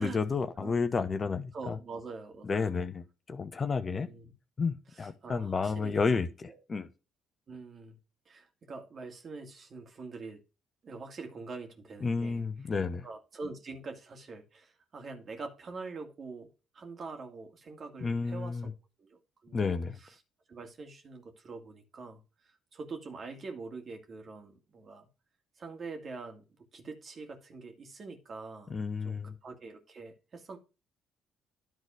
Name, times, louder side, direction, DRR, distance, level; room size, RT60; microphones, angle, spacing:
voice 1, 0.0-1.8 2.4-4.1 4.6-6.9 12.0-13.1 18.0-18.7 19.5-20.0 28.7-29.4, left 4 dB, 35° left, 0.8 m, -31 dB
voice 2, 1.5-2.7 3.8-4.3 5.0-6.6 7.5-8.0 8.3-10.4 10.8-12.4 13.0-16.5 16.7-18.7 19.0-19.7 20.5-25.1 25.6-28.8 29.0-30.6, right 4 dB, 45° right, 2.2 m, -44 dB
10.5 x 4.1 x 4.9 m
hypercardioid pair, 50°, 0 cm